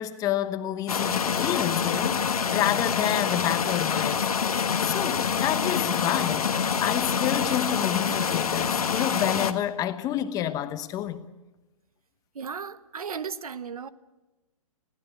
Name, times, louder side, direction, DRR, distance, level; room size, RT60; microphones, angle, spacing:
voice 1, 0.0-4.3 4.8-6.5 6.8-11.3, left 11 dB, 20° left, 1.0 m, -29 dB
sound 1, 0.9-9.5, left 6 dB, 85° left, 1.5 m, -26 dB
voice 2, 12.3-13.9, right 6 dB, 80° right, 1.1 m, -35 dB
21.0 x 15.5 x 9.6 m
hypercardioid pair, 145°, 18 cm